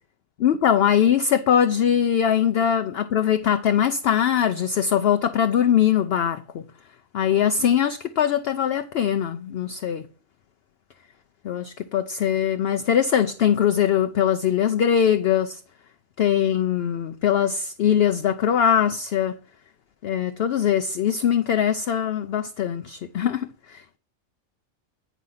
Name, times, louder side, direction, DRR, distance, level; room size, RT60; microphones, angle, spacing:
voice 1, 0.4-6.6 7.1-10.1 11.4-15.6 16.2-19.4 20.0-24.0, left 9 dB, 60° left, 0.7 m, -21 dB
9.4 x 5.0 x 5.6 m
omnidirectional pair, 1.4 m